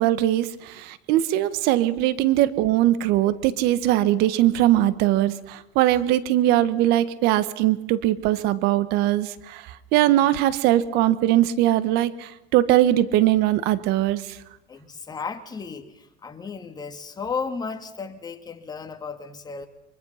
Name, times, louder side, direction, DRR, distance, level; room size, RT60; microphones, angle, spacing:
voice 1, 0.0-9.6 9.9-14.4, right 14 dB, 60° right, 14 dB, 1.6 m, -21 dB
voice 2, 14.7-19.7, left 5 dB, 20° left, 7 dB, 2.4 m, -34 dB
24.5 x 24.0 x 5.9 m, 0.96 s
supercardioid pair, 105°, 19 cm